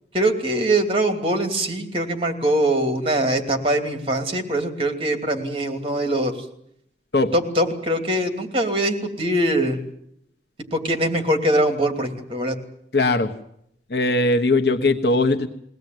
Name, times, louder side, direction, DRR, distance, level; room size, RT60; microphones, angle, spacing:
voice 1, 0.1-6.3 7.3-9.8 10.7-12.6, right 1 dB, 30° right, 6 dB, 2.9 m, -22 dB
voice 2, 12.9-13.3 13.9-15.5, left 2 dB, 65° left, 4 dB, 1.3 m, -19 dB
22.5 x 17.5 x 9.3 m, 0.74 s
head